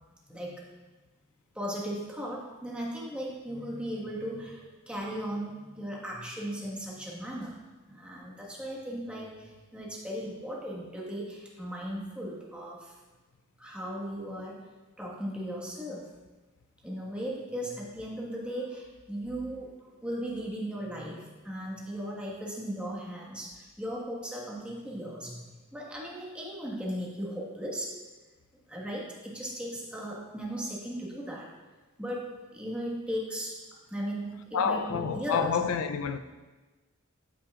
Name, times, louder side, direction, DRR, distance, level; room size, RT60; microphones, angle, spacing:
voice 1, 0.3-0.6 1.5-7.6 7.9-12.9 13.6-14.7 15.0-16.1 16.8-19.7 20.0-27.9 28.7-31.5 32.0-33.5 33.9-35.6, equal, 5° right, 1.4 m, -37 dB
voice 2, 34.5-36.2, left 6 dB, 75° left, 0.4 m, -28 dB
13.0 x 5.7 x 2.4 m
head